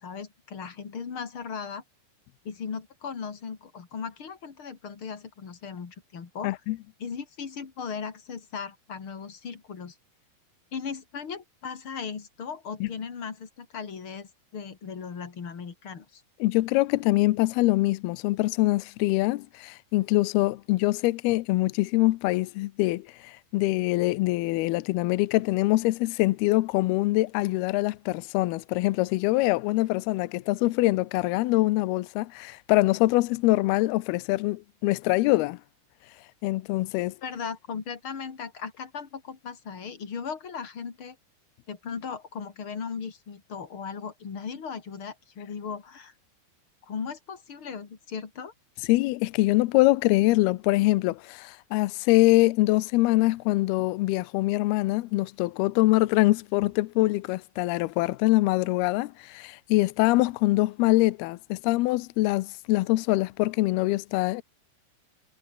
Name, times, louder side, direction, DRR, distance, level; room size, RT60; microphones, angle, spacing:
voice 1, 0.0-1.8 2.4-6.6 7.0-9.9 10.7-16.2 37.2-41.2 41.7-46.1 46.8-48.5, left 6 dB, 35° left, 2.6 m, -37 dB
voice 2, 6.4-6.8 12.8-12.9 16.4-35.6 36.4-37.2 48.9-64.4, left 19 dB, 85° left, 2.3 m, -24 dB
omnidirectional pair, 5.4 m